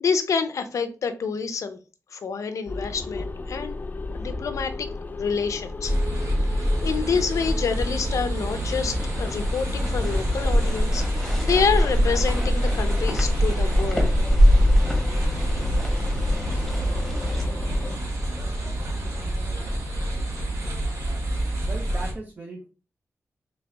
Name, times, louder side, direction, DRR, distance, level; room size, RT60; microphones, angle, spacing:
voice 1, 0.0-1.8 2.1-3.8 4.1-4.9 5.2-5.9 6.6-14.2, left 5 dB, 90° left, 9 dB, 0.6 m, -27 dB
sound 1, 2.7-18.0, left 2 dB, 35° left, 0.4 m, -34 dB
sound 2, 5.8-22.1, equal, 85° right, 1.8 m, -27 dB
sound 3, 8.5-17.4, equal, ahead, 1.2 m, -24 dB
voice 2, 21.7-22.7, right 2 dB, 35° right, 1 dB, 0.7 m, -37 dB
4.0 x 3.3 x 3.4 m, 0.35 s
wide cardioid pair, 120°, 5 cm